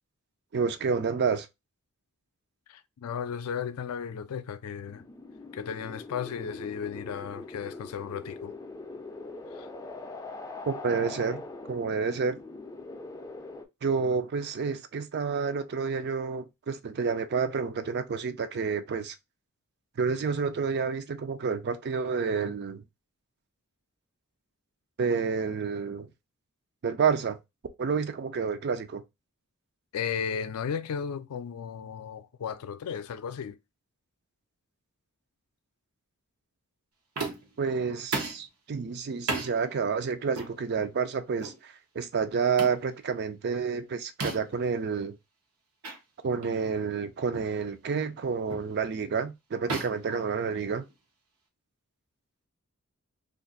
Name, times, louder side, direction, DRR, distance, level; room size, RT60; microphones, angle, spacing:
voice 1, 0.5-1.5 10.7-11.4 11.7-12.4 13.8-19.2 20.0-22.8 25.0-26.1 26.8-27.4 27.8-29.0 37.6-45.1 46.2-50.8, right 5 dB, 50° right, 0.4 m, -29 dB
voice 2, 2.7-5.1 5.5-8.6 9.5-9.7 29.9-33.6, left 7 dB, 85° left, 0.4 m, -35 dB
sound 1, 4.9-13.7, left 3 dB, 15° left, 0.4 m, -42 dB
sound 2, 37.2-37.6 38.1-38.5 39.3-39.5 40.3-40.5 41.4-41.6 42.6-42.8 44.2-44.6 45.8-46.0 46.4-46.6 47.3-47.6 48.5-48.7 49.7-50.9, right 3 dB, 80° right, 0.9 m, -34 dB
2.5 x 2.5 x 3.8 m
head